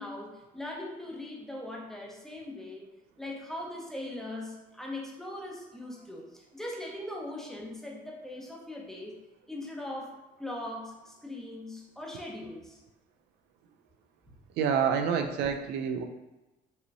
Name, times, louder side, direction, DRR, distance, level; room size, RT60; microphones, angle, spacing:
voice 1, 0.0-2.9 3.2-9.2 9.5-12.8, left 1 dB, ahead, -3 dB, 1.0 m, -40 dB
voice 2, 14.6-16.0, right 7 dB, 90° right, 5 dB, 0.5 m, -27 dB
5.4 x 3.0 x 2.7 m, 1.0 s
cardioid pair, 110°, 17 cm